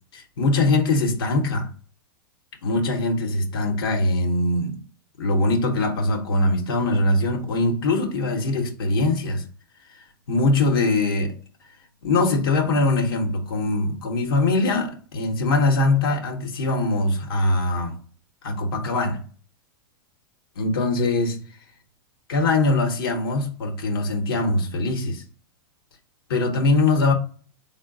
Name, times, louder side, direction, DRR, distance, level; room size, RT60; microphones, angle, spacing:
voice 1, 0.1-1.7 2.6-4.8 5.2-9.4 10.3-11.3 12.0-18.0 18.4-19.2 20.6-21.4 22.3-25.2 26.3-27.1, left 2 dB, 85° left, 0.8 m, -22 dB
3.8 x 2.0 x 3.6 m
hypercardioid pair, 130°, 12 cm